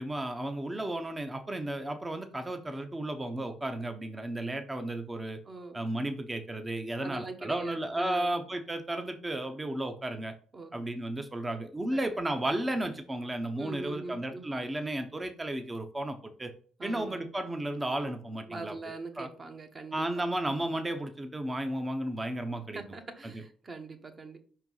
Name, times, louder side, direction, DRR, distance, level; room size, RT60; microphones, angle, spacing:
voice 1, 0.0-5.4 5.7-10.3 10.7-16.5 16.8-19.3 19.9-22.8 23.2-23.4, right 1 dB, 20° right, 7 dB, 0.9 m, -33 dB
voice 2, 5.5-5.8 7.0-8.3 10.5-10.7 11.9-12.0 13.6-14.4 16.8-17.2 18.5-20.2 22.7-24.4, right 3 dB, 35° right, 5 dB, 1.3 m, -42 dB
5.4 x 4.5 x 4.0 m, 0.43 s
supercardioid pair, 65°, 0 cm